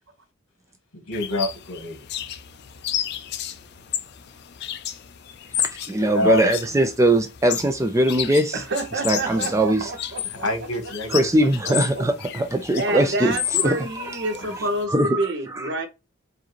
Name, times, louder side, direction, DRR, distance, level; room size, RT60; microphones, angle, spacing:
voice 1, 0.9-2.1 6.1-6.4 10.3-11.3 14.4-14.5, left 1 dB, 70° left, 1.4 m, -26 dB
sound 1, 1.1-14.8, left 11 dB, 50° left, 0.4 m, -32 dB
voice 2, 5.6-8.6 9.0-9.9 11.1-13.3 13.6-14.6 14.9-15.7, right 1 dB, 15° right, 0.4 m, -21 dB
voice 3, 8.5-10.5 11.6-12.0 12.8-15.9, right 2 dB, 55° right, 0.9 m, -28 dB
4.8 x 2.7 x 3.0 m
head